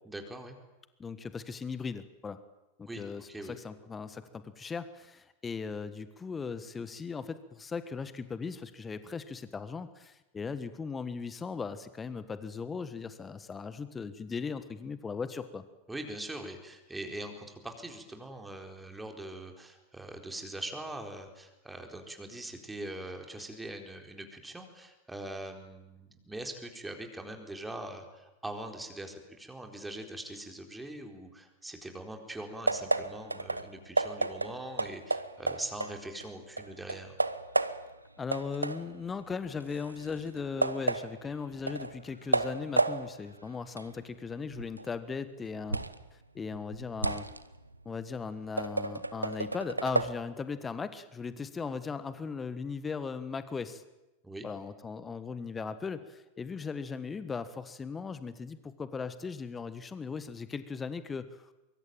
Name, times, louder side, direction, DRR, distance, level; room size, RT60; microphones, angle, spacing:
voice 1, 0.1-0.5 2.9-3.6 15.9-37.1 54.2-54.5, right 1 dB, 5° right, 4 dB, 4.2 m, -42 dB
voice 2, 1.0-2.4 2.8-15.6 38.2-45.8 46.1-47.3 47.8-53.8 54.4-61.4, left 5 dB, 15° left, 13 dB, 1.5 m, -38 dB
sound 1, 32.7-36.3 36.6-38.0 38.3-46.1 46.4-50.1, right 2 dB, 85° right, 1.0 m, -32 dB
23.5 x 23.5 x 9.1 m, 1.0 s
figure-of-eight pair, 90°, 0 cm